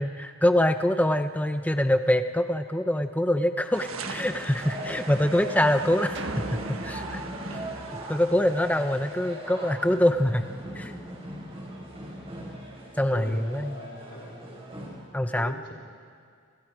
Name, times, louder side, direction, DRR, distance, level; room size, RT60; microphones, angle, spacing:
voice 1, 0.0-7.2 8.1-11.0 13.0-13.8 15.1-15.6, left 1 dB, 5° left, 8 dB, 0.8 m, -25 dB
sound 1, 3.7-14.9, equal, 25° right, 5.9 m, -39 dB
sound 2, 3.7-9.5, right 4 dB, 80° right, 1.6 m, -42 dB
sound 3, 6.1-8.7, right 2 dB, 55° right, 1.7 m, -38 dB
voice 2, 13.1-14.4 15.4-15.7, left 1 dB, 55° left, -1 dB, 3.9 m, -40 dB
29.0 x 28.5 x 5.0 m, 2.2 s
head